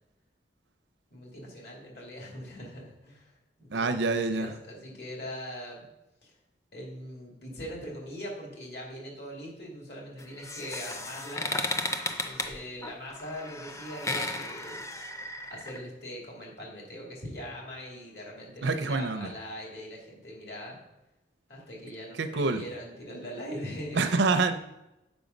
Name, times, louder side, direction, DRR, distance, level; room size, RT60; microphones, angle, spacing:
voice 1, 1.1-3.3 3.6-5.8 6.2-6.3 6.7-11.5 12.0-14.8 15.1-15.2 15.5-20.8 21.5-24.3, equal, 60° left, -2 dB, 2.5 m, -41 dB
voice 2, 3.7-4.5 18.6-19.3 22.2-22.6 23.9-24.5, right 3 dB, 80° right, 9 dB, 0.6 m, -26 dB
sound 1, 10.2-15.8, left 2 dB, 15° left, 0.5 m, -34 dB
6.9 x 5.5 x 5.2 m, 0.94 s
head